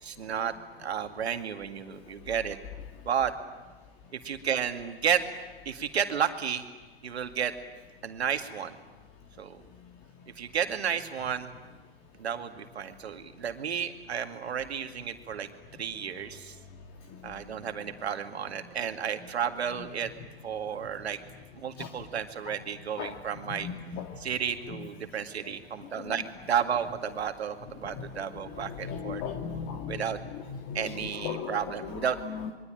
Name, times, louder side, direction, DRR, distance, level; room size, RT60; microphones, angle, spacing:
voice 1, 0.0-0.5 0.8-2.6 3.0-3.3 4.2-5.2 5.7-6.7 7.0-7.5 8.0-8.7 9.4-9.6 10.4-11.5 12.2-15.5 15.8-16.6 17.2-20.1 20.4-21.2 21.6-23.7 24.2-29.2 29.9-30.2 30.7-32.2, right 8 dB, 80° right, 7 dB, 2.2 m, -32 dB
voice 2, 23.5-24.2 24.8-24.9 26.0-26.2 27.9-28.2 28.5-32.5, left 7 dB, 40° left, 5 dB, 2.0 m, -37 dB
26.5 x 23.0 x 9.0 m, 1.2 s
hypercardioid pair, 110°, 32 cm